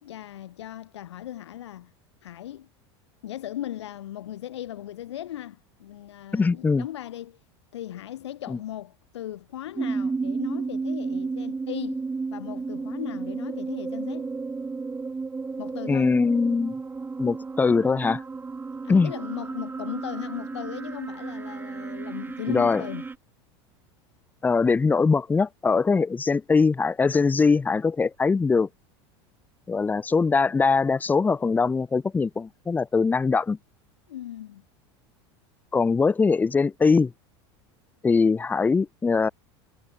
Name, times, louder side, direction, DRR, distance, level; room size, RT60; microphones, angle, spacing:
voice 1, 0.0-1.9 2.2-2.7 3.2-7.4 7.7-12.0 12.3-14.3 15.6-16.1 18.8-23.1 34.1-34.6, left 12 dB, 90° left, 1.7 m, -37 dB
voice 2, 6.3-6.8 15.9-16.7 17.2-18.2 18.9-19.1 22.5-22.8 24.4-28.7 29.7-33.6 35.7-37.1 38.0-39.3, left 4 dB, 10° left, 0.4 m, -22 dB
sound 1, 9.8-23.2, right 4 dB, 15° right, 0.8 m, -33 dB
hypercardioid pair, 105°, 14 cm